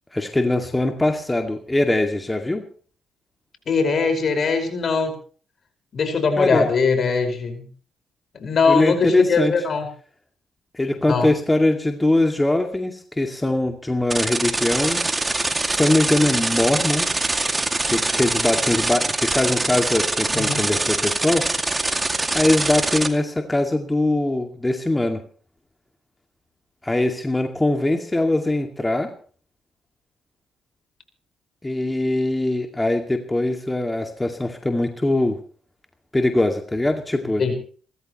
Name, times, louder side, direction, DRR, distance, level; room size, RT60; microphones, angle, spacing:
voice 1, 0.1-2.6 6.4-6.7 8.7-9.5 10.7-15.0 15.6-17.1 17.9-21.4 22.3-25.2 26.8-29.1 31.6-35.4 36.1-37.4, left 2 dB, 15° left, 4 dB, 2.2 m, -22 dB
voice 2, 3.7-5.1 5.9-7.7 8.4-9.9 11.1-11.3 20.3-20.7 37.4-37.5, left 4 dB, 55° left, 5 dB, 5.3 m, -21 dB
sound 1, 14.1-23.1, right 2 dB, 20° right, 2.3 m, -23 dB
28.5 x 13.5 x 3.1 m, 0.43 s
supercardioid pair, 60°, 0 cm